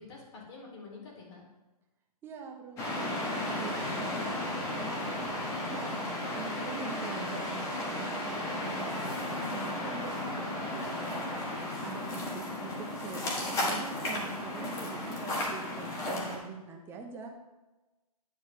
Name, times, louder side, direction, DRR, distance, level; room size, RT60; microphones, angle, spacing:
voice 1, 0.0-1.4 11.3-11.8, left 4 dB, 40° left, -3 dB, 2.4 m, -48 dB
voice 2, 2.2-4.4 4.7-17.3, right 5 dB, 10° right, 2 dB, 0.8 m, -45 dB
sound 1, 2.8-16.4, left 1 dB, 15° left, 1.3 m, -34 dB
9.6 x 3.2 x 6.6 m, 1.1 s
hypercardioid pair, 145°, 20 cm